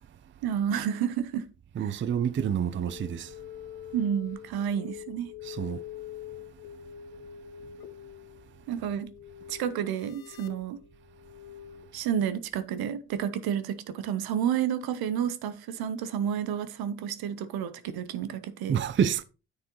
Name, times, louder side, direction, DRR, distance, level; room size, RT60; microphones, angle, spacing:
voice 1, 0.4-1.5 3.9-5.3 8.7-9.1 9.5-10.8 11.9-18.8, right 9 dB, 70° right, 1.0 m, -30 dB
voice 2, 1.8-3.3 5.4-5.8 18.7-19.2, right 8 dB, 30° right, 0.5 m, -28 dB
sound 1, 2.7-11.8, left 11 dB, 70° left, 0.9 m, -45 dB
9.6 x 6.4 x 3.0 m
supercardioid pair, 70°, 38 cm